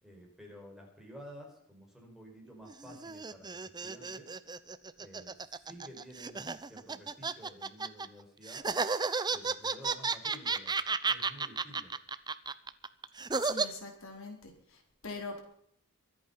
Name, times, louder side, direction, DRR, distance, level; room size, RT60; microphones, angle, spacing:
voice 1, 0.0-4.3 5.0-8.7 9.3-10.8 11.1-11.9, equal, ahead, 0 dB, 5.1 m, -52 dB
sound 1, 2.7-8.1 8.5-13.7, right 4 dB, 20° right, 0.7 m, -33 dB
voice 2, 13.4-15.4, left 3 dB, 65° left, 2 dB, 4.3 m, -43 dB
24.5 x 8.7 x 5.7 m, 0.64 s
head